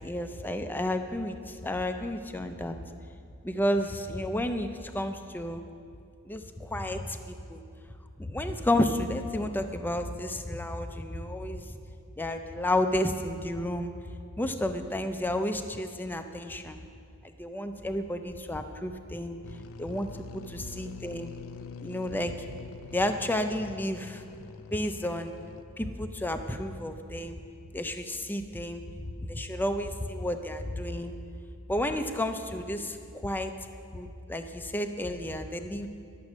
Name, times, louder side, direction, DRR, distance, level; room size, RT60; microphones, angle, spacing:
voice 1, 0.0-2.8 3.4-5.6 6.2-7.6 8.2-11.7 12.2-13.9 14.4-16.8 17.2-19.4 19.8-21.3 21.8-22.3 22.9-24.2 24.7-25.3 25.8-27.4 27.7-31.1 31.7-33.5 33.9-35.9, left 1 dB, 10° left, 7 dB, 0.5 m, -31 dB
sound 1, 19.4-25.6, left 5 dB, 65° left, 0.4 m, -46 dB
11.5 x 7.6 x 6.2 m, 2.4 s
head